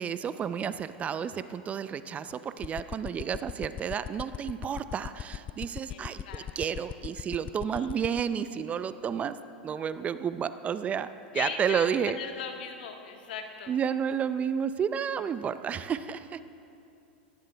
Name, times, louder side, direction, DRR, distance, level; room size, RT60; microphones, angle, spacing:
voice 1, 0.0-9.4 9.6-11.1 11.3-12.2 13.7-16.4, right 7 dB, 25° right, 13 dB, 0.6 m, -31 dB
sound 1, 2.6-8.2, left 10 dB, 25° left, 0.3 m, -36 dB
voice 2, 5.9-6.5 7.7-7.9 11.3-13.7, left 7 dB, 70° left, 3 dB, 1.9 m, -39 dB
18.5 x 17.0 x 3.4 m, 2.6 s
hypercardioid pair, 105°, 5 cm